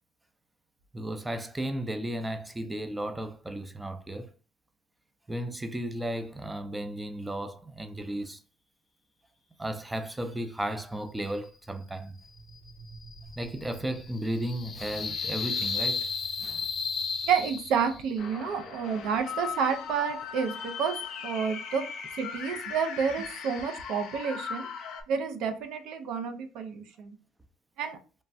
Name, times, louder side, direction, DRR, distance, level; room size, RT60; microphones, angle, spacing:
voice 1, 0.9-4.3 5.3-8.4 9.6-12.1 13.4-16.1 16.4-16.7 18.3-18.4, right 1 dB, 10° right, 0.4 m, -34 dB
sound 1, 12.2-18.2, left 5 dB, 40° left, 0.8 m, -34 dB
voice 2, 17.2-21.9 22.1-24.7 25.1-27.1 27.8-28.0, right 6 dB, 70° right, 0.4 m, -30 dB
sound 2, 18.2-25.0, left 6 dB, 65° left, 0.6 m, -38 dB
3.1 x 2.2 x 2.5 m
supercardioid pair, 85°, 0 cm